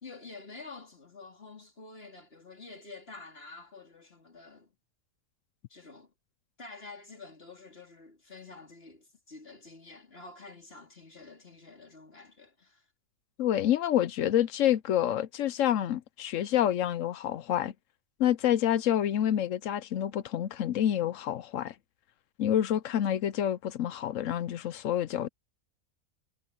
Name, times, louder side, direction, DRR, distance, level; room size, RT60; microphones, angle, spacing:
voice 1, 0.0-4.7 5.7-6.1 6.6-12.9, left 3 dB, 45° left, 4.1 m, -48 dB
voice 2, 13.4-17.7 18.2-21.7 22.4-25.3, left 11 dB, 70° left, 1.0 m, -28 dB
omnidirectional pair, 1.4 m